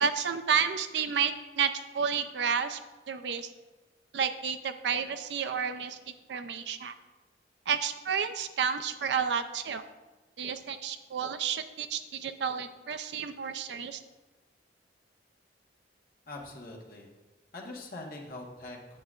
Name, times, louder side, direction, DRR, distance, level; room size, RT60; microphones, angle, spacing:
voice 1, 0.0-2.8 3.1-3.5 4.1-6.0 6.3-6.9 7.7-9.8 10.4-14.0, right 7 dB, 70° right, 10 dB, 0.4 m, -31 dB
voice 2, 16.3-17.1 17.5-19.0, left 2 dB, 55° left, 0 dB, 1.2 m, -43 dB
8.6 x 7.5 x 2.4 m, 1.2 s
head